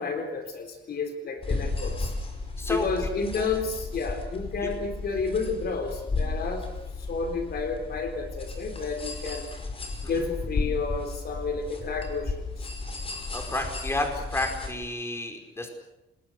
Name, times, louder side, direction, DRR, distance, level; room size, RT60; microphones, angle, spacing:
voice 1, 0.0-2.1 2.7-6.7 7.1-9.5 10.1-12.7, left 4 dB, 55° left, 6 dB, 3.9 m, -31 dB
sound 1, 1.4-14.7, left 3 dB, 30° left, 5.2 m, -34 dB
voice 2, 2.6-3.1 10.0-10.3 13.3-15.7, left 1 dB, 15° left, 4 dB, 5.1 m, -31 dB
29.0 x 21.0 x 6.8 m, 0.92 s
cardioid pair, 125°, 20 cm